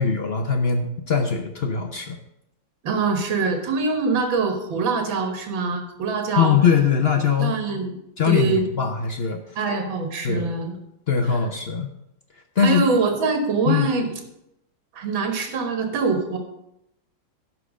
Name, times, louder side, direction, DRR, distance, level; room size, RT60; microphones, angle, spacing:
voice 1, 0.0-2.2 6.4-7.6 8.2-9.6 10.2-10.5 11.1-11.9 12.6-12.8 13.7-13.9, left 7 dB, 65° left, 5 dB, 0.6 m, -21 dB
voice 2, 2.8-6.5 7.4-8.0 8.2-8.6 9.6-10.8 12.6-14.1 14.9-16.4, right 4 dB, 85° right, 4 dB, 2.2 m, -24 dB
11.5 x 4.5 x 7.3 m, 0.82 s
omnidirectional pair, 2.1 m